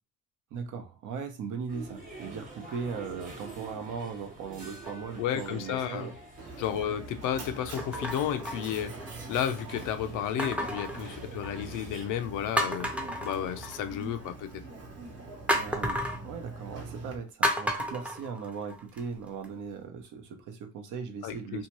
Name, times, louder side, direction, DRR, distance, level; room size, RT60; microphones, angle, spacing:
voice 1, 0.5-6.1 6.7-6.9 15.5-21.7, right 6 dB, 75° right, 0.7 m, -38 dB
sound 1, 1.7-12.1, right 2 dB, 30° right, 1.1 m, -47 dB
sound 2, 4.8-5.3 6.0-6.1 7.8-9.2 10.4-11.8 12.2-12.3 12.6-14.0 15.5-16.2 17.4-19.0 19.4-19.5, equal, 5° right, 0.4 m, -32 dB
voice 2, 5.2-6.1 6.6-9.0 9.3-12.9 13.2-14.6 21.2-21.7, left 9 dB, 90° left, 0.5 m, -32 dB
Mechanisms, 6.4-17.2, right 3 dB, 55° right, 1.0 m, -44 dB
2.7 x 2.2 x 2.9 m
cardioid pair, 90°, 30 cm